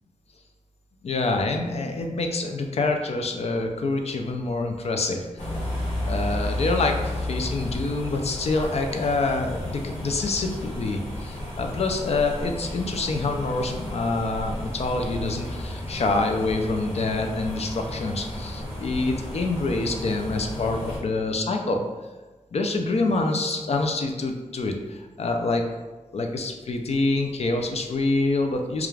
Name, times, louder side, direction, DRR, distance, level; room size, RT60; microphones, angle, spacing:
voice 1, 1.0-5.2 6.1-21.8 22.5-25.6 26.1-28.9, left 3 dB, 55° left, 4 dB, 0.4 m, -26 dB
sound 1, 5.4-21.0, left 1 dB, 80° left, 0.8 m, -33 dB
2.4 x 2.3 x 3.1 m, 1.2 s
wide cardioid pair, 95°, 13 cm